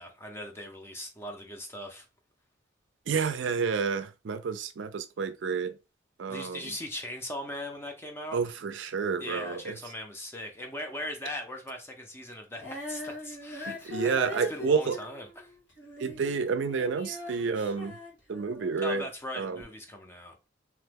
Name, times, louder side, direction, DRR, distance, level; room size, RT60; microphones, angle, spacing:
voice 1, 0.0-2.1 6.3-8.4 9.2-14.1 14.5-15.5 18.8-20.4, left 1 dB, 10° left, 0.5 m, -39 dB
voice 2, 3.1-5.8 6.2-6.7 8.3-9.8 13.7-15.0 16.0-18.0 18.3-19.0 19.4-19.6, right 5 dB, 70° right, 0.4 m, -30 dB
Female singing, 12.5-18.9 19.6-19.7, left 2 dB, 60° left, 1.5 m, -41 dB
2.9 x 2.2 x 3.3 m
head